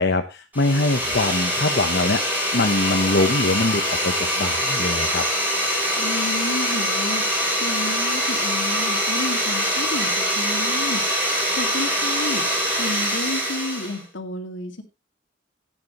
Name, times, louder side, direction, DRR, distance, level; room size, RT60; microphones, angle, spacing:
voice 1, 0.0-5.2, left 2 dB, 55° left, 4 dB, 1.0 m, -23 dB
sound 1, 0.5-14.0, equal, 10° right, 7.7 m, -23 dB
voice 2, 6.0-7.2 7.6-11.0 11.6-12.4 12.8-14.8, left 2 dB, 75° left, 5 dB, 2.2 m, -31 dB
15.5 x 9.5 x 3.1 m, 0.26 s
head